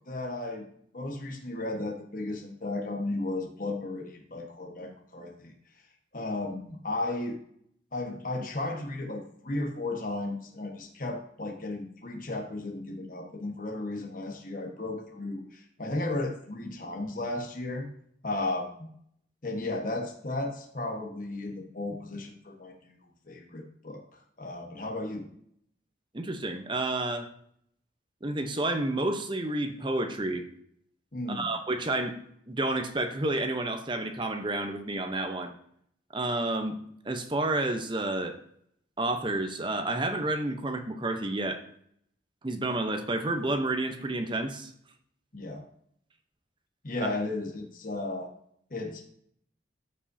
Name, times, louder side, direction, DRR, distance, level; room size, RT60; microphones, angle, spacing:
voice 1, 0.1-0.6 0.9-5.5 6.1-7.4 7.9-17.9 18.2-18.9 19.4-22.9 23.3-24.0 24.4-25.3 31.1-31.5 45.3-45.6 46.8-48.3 48.7-49.0, left 2 dB, 45° left, 1 dB, 1.4 m, -34 dB
voice 2, 26.1-27.3 28.2-30.4 31.3-32.2 32.5-35.5 36.1-36.8 37.0-38.4 39.0-41.6 42.4-44.7 47.0-47.1, right 2 dB, 25° right, 6 dB, 0.8 m, -30 dB
14.0 x 5.4 x 2.7 m, 0.67 s
head